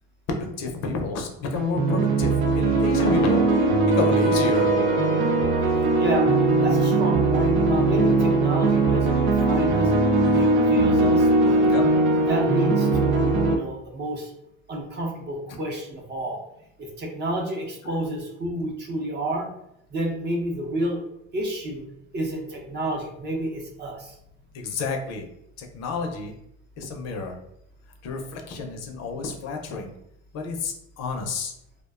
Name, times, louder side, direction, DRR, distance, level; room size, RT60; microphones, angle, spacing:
voice 1, 0.3-3.4 4.0-4.7 10.2-10.5 11.7-11.8 17.8-18.0 24.5-25.2 25.6-26.3 26.8-27.3 28.0-29.9 30.3-31.5, left 3 dB, 55° left, 3 dB, 0.6 m, -30 dB
sound 1, 1.5-13.6, right 2 dB, 85° right, 0.6 m, -20 dB
voice 2, 6.0-9.9 10.4-11.6 12.3-14.3 14.7-16.4 16.8-19.5 19.9-21.0 21.3-21.8 22.1-24.2, right 1 dB, 35° right, 1 dB, 0.6 m, -30 dB
2.5 x 2.1 x 2.3 m, 0.77 s
supercardioid pair, 105°, 31 cm